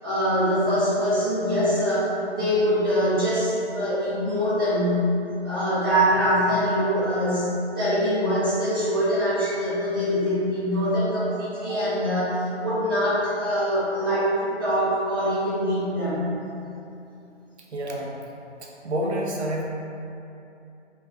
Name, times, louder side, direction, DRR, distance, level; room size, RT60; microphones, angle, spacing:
voice 1, 0.0-5.1 5.4-16.3, equal, 20° right, -12 dB, 0.7 m, -23 dB
voice 2, 17.7-18.1 18.8-19.6, right 1 dB, 70° right, -2 dB, 0.6 m, -27 dB
2.4 x 2.3 x 3.7 m, 2.7 s
figure-of-eight pair, 150°, 35 cm